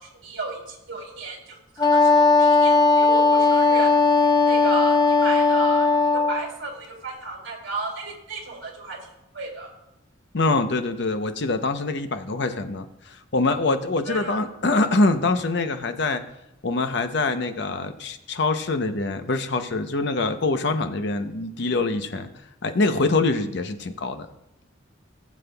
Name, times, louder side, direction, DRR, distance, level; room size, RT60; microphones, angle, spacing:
voice 1, 0.0-5.9 6.3-9.0 9.3-9.7 14.1-14.4, right 3 dB, 65° right, -1 dB, 2.9 m, -34 dB
Wind instrument woodwind instrument, 1.8-6.4, left 3 dB, 20° left, 0.7 m, -17 dB
voice 2, 10.3-16.2 16.6-22.3 22.6-24.3, left 3 dB, 60° left, 8 dB, 0.7 m, -24 dB
19.0 x 7.2 x 2.3 m, 0.88 s
head